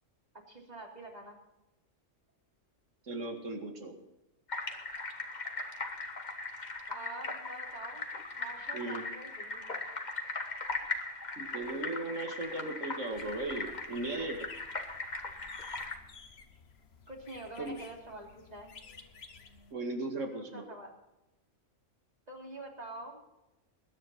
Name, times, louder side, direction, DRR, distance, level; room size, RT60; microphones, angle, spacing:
voice 1, 0.5-1.4 6.9-8.1 8.3-9.8 17.1-18.7 20.3-20.9 22.3-23.2, right 1 dB, 30° right, 0 dB, 3.2 m, -46 dB
voice 2, 3.0-3.9 8.7-9.0 11.4-14.4 17.6-17.8 19.7-20.6, right 2 dB, 75° right, 5 dB, 2.5 m, -37 dB
sound 1, 4.5-16.0, left 3 dB, 35° left, 1.6 m, -39 dB
sound 2, 13.1-19.7, left 5 dB, 55° left, 1.4 m, -54 dB
21.0 x 10.0 x 4.3 m, 0.96 s
omnidirectional pair, 1.3 m